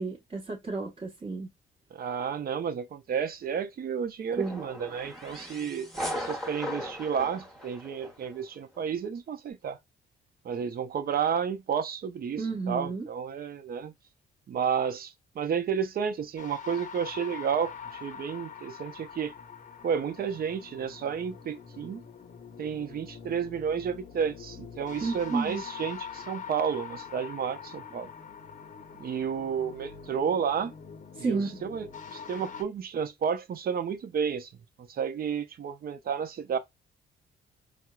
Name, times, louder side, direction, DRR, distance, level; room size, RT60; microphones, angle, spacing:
voice 1, 0.0-1.5 4.4-4.6 12.4-13.0 25.0-25.6 31.2-31.5, right 4 dB, 30° right, 1.0 m, -31 dB
voice 2, 1.9-9.8 10.4-13.9 14.5-19.3 19.8-22.0 22.6-28.1 29.0-30.7 31.2-34.5 34.8-36.6, right 7 dB, 50° right, 0.6 m, -31 dB
sound 1, 4.4-8.4, equal, ahead, 1.0 m, -38 dB
sound 2, 16.4-32.6, left 7 dB, 40° left, 0.6 m, -44 dB
4.3 x 2.0 x 2.3 m
cardioid pair, 90°, 20 cm